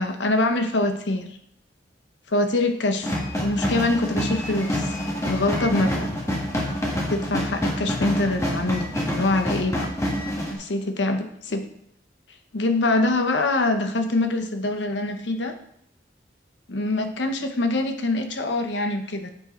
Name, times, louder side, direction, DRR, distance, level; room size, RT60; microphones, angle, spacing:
voice 1, 0.0-1.3 2.3-4.9 5.2-6.1 7.1-9.9 10.5-11.6 12.5-15.5 16.7-19.3, left 2 dB, 85° left, 6 dB, 0.9 m, -24 dB
sound 1, 3.0-10.6, equal, 15° left, 1.3 m, -27 dB
7.5 x 5.6 x 4.3 m, 0.70 s
head